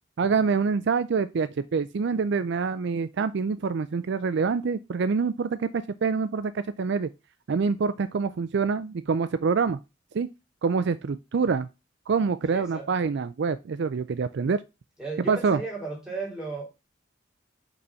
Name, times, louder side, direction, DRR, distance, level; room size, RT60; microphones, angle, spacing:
voice 1, 0.2-7.1 7.5-9.8 10.1-10.3 10.6-11.7 12.1-14.6 15.3-15.6, right 5 dB, 60° right, 0.4 m, -26 dB
voice 2, 12.5-13.1 15.0-16.7, right 3 dB, 5° right, 3.1 m, -35 dB
5.4 x 4.1 x 5.6 m
head